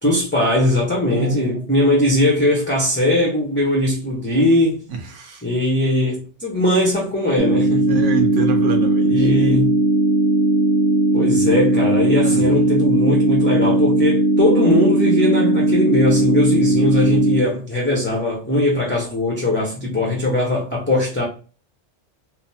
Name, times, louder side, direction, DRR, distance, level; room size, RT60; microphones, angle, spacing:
voice 1, 0.0-4.8 5.4-7.9 9.0-9.7 11.1-21.3, left 1 dB, 15° left, 0.6 m, -19 dB
voice 2, 1.1-1.7 4.9-5.4 7.9-9.3 12.2-12.4, right 4 dB, 90° right, 1.1 m, -26 dB
sound 1, 7.4-17.4, right 1 dB, 70° right, 1.1 m, -17 dB
3.3 x 2.0 x 2.7 m
omnidirectional pair, 1.2 m